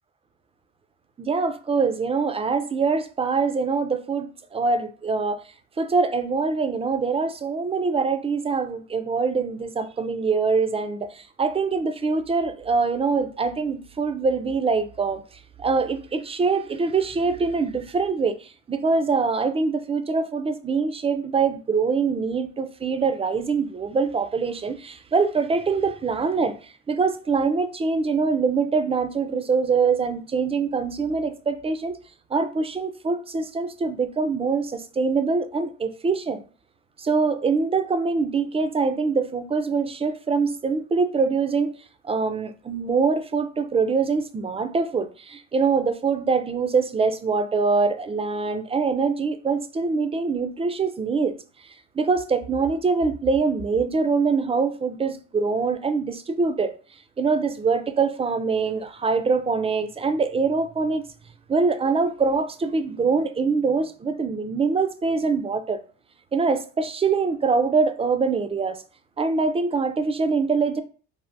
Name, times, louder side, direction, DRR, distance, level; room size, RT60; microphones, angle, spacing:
voice 1, 1.2-5.4 5.8-15.2 15.6-26.6 26.9-32.0 32.3-36.4 37.0-41.7 42.0-51.3 52.0-56.7 57.2-61.0 61.5-65.8 66.3-68.8 69.2-70.8, right 4 dB, 20° right, 0.3 m, -24 dB
3.4 x 2.1 x 2.5 m
supercardioid pair, 70°, 33 cm